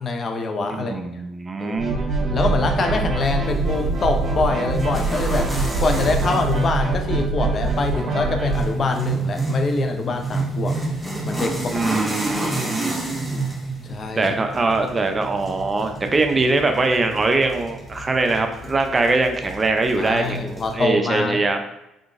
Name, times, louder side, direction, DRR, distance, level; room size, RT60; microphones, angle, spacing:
voice 1, 0.0-1.0 1.6-1.8 2.3-5.5 5.8-10.8 11.2-11.8 13.8-14.3 20.0-21.4, left 3 dB, 45° left, 5 dB, 0.6 m, -24 dB
voice 2, 0.7-2.0 11.7-13.4 14.2-21.6, right 3 dB, 30° right, 5 dB, 0.5 m, -22 dB
sound 1, 1.8-8.7, right 3 dB, 50° right, 1.2 m, -24 dB
sound 2, 3.4-20.7, right 2 dB, ahead, 1.0 m, -30 dB
3.7 x 3.4 x 2.5 m, 0.92 s
supercardioid pair, 70°, 0 cm